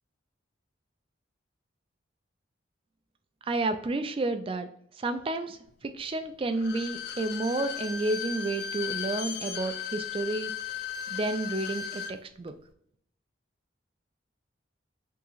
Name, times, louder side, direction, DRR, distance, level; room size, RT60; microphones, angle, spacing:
voice 1, 3.5-4.7 5.0-5.6 5.8-10.5 11.1-12.5, right 2 dB, 30° right, 8 dB, 0.3 m, -30 dB
Bowed string instrument, 6.5-12.2 12.5-12.6, left 8 dB, 55° left, 0.3 m, -36 dB
3.6 x 2.8 x 2.4 m, 0.67 s
head